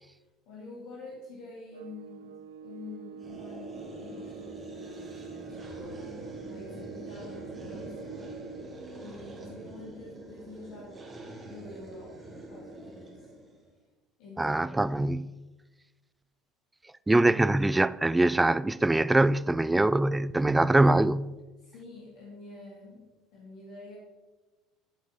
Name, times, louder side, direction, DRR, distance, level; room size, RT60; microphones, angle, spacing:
voice 1, 0.0-11.0 11.5-13.3 14.2-15.2 20.3-20.8 21.6-24.0, left 2 dB, 70° left, 2.2 m, -47 dB
sound 1, 1.7-8.8, right 6 dB, 80° right, 0.4 m, -45 dB
sound 2, 3.2-13.7, right 2 dB, 25° right, 2.3 m, -44 dB
voice 2, 14.4-15.3 17.1-21.3, right 2 dB, 10° right, 0.3 m, -23 dB
12.5 x 5.7 x 3.5 m
hypercardioid pair, 70°, 0 cm